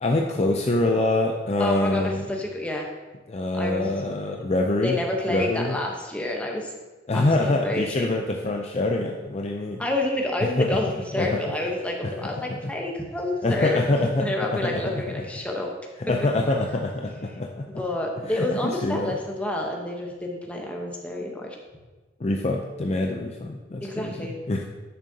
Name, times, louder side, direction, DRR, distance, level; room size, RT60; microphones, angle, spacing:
voice 1, 0.0-2.2 3.3-5.0 5.3-5.8 7.1-9.8 10.6-11.4 12.0-12.1 12.4-12.7 13.4-15.3 16.1-17.7 18.3-19.2 22.2-24.6, left 2 dB, 35° left, 1 dB, 0.4 m, -25 dB
voice 2, 1.6-2.9 3.5-3.9 4.8-6.7 7.1-8.1 9.8-15.7 16.2-16.3 17.7-21.5 23.8-24.3, left 1 dB, 5° left, 0 dB, 0.9 m, -29 dB
10.5 x 6.3 x 2.8 m, 1.2 s
head